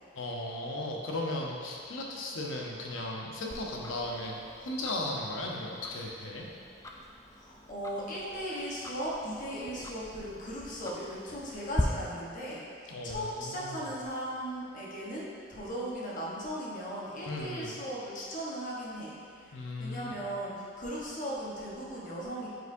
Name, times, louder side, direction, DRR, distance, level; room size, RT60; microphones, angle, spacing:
voice 1, 0.1-6.5 12.9-13.9 17.3-17.7 19.5-20.1, left 1 dB, 80° left, -1 dB, 0.8 m, -36 dB
Tick-tock, 3.5-11.8, left 2 dB, 15° left, 0.3 m, -42 dB
voice 2, 7.3-19.5 19.8-22.5, equal, 40° left, -6 dB, 1.1 m, -37 dB
8.1 x 4.9 x 2.7 m, 2.4 s
head